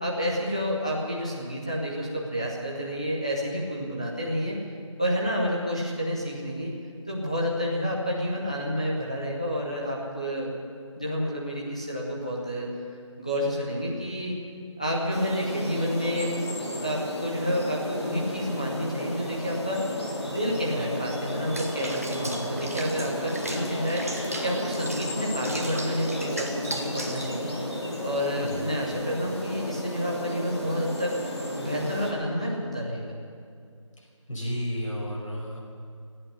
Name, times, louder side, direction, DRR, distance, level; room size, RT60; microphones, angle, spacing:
voice 1, 0.0-4.6 5.0-6.7 7.1-10.5 11.0-12.7 13.2-14.3 14.8-19.9 20.3-27.5 28.0-31.2 31.6-33.1, equal, 10° left, -3 dB, 0.8 m, -29 dB
sound 1, 15.1-32.1, left 1 dB, 55° left, 3.5 m, -33 dB
Water / Bathtub (filling or washing), 21.5-27.3, right 1 dB, 30° right, 1.1 m, -37 dB
voice 2, 34.3-35.6, equal, 80° left, -2 dB, 5.4 m, -32 dB
17.0 x 8.8 x 9.6 m, 2.3 s
figure-of-eight pair, 180°, 17 cm